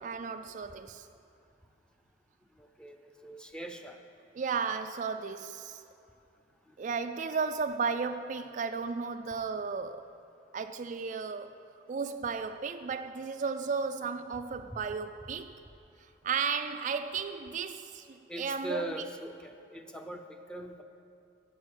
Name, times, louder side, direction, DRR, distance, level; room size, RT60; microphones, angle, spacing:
voice 1, 0.0-1.1 4.3-5.8 6.8-10.1 10.5-11.6 11.9-15.5 16.2-19.0, right 5 dB, 45° right, 0.3 m, -34 dB
voice 2, 2.6-4.0 18.3-20.8, right 1 dB, 5° left, 0.7 m, -41 dB
14.0 x 7.8 x 6.5 m
head